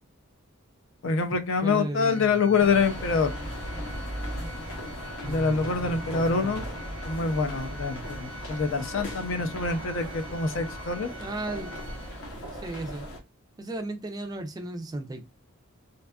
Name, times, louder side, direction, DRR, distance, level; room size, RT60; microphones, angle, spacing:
voice 1, 1.0-3.3 5.2-6.6 7.0-11.1, left 4 dB, 60° left, 0.5 m, -26 dB
voice 2, 1.6-2.3 5.2-6.6 7.9-8.0 11.2-11.8 12.5-13.1 13.6-15.2, right 2 dB, 20° right, 0.3 m, -35 dB
Organ, 2.0-12.6, equal, 85° right, 0.5 m, -46 dB
sound 1, 2.6-13.2, equal, 80° left, 0.9 m, -37 dB
2.6 x 2.3 x 2.2 m
head